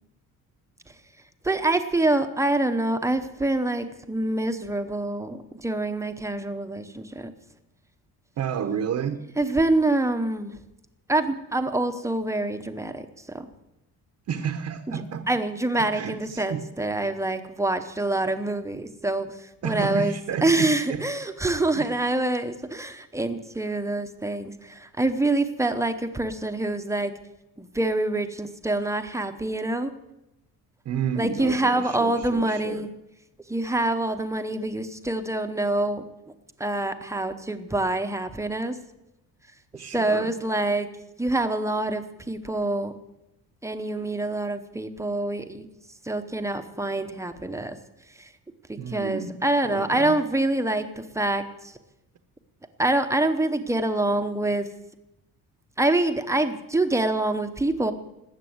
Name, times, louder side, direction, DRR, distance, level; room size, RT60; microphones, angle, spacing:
voice 1, 1.4-7.3 9.4-10.6 11.1-13.5 14.9-15.0 15.3-20.1 20.4-27.1 27.6-29.9 31.2-32.9 33.5-36.0 36.6-38.8 39.9-40.9 41.2-42.9 43.6-45.7 46.0-47.8 48.2-48.3 48.7-51.4 52.8-54.7 55.8-57.9, right 2 dB, 10° right, 7 dB, 0.8 m, -26 dB
voice 2, 8.4-9.2 14.3-15.3 15.7-16.6 19.6-21.0 21.7-21.9 30.8-32.9 39.7-40.3 48.8-49.4 49.6-50.2, right 7 dB, 50° right, 7 dB, 1.0 m, -31 dB
19.5 x 8.3 x 7.9 m, 0.90 s
cardioid pair, 165°, 37 cm